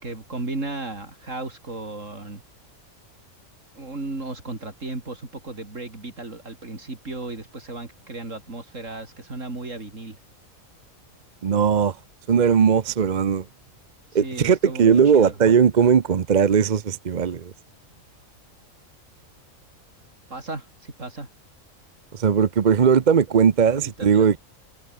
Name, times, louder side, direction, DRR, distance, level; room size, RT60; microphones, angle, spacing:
voice 1, 0.0-2.4 3.7-10.2 14.2-15.3 20.3-21.3 23.8-24.2, right 2 dB, 65° right, 4.7 m, -35 dB
voice 2, 11.4-12.0 12.3-13.4 14.1-17.5 22.1-24.4, right 7 dB, 40° right, 0.7 m, -18 dB
omnidirectional pair, 1.4 m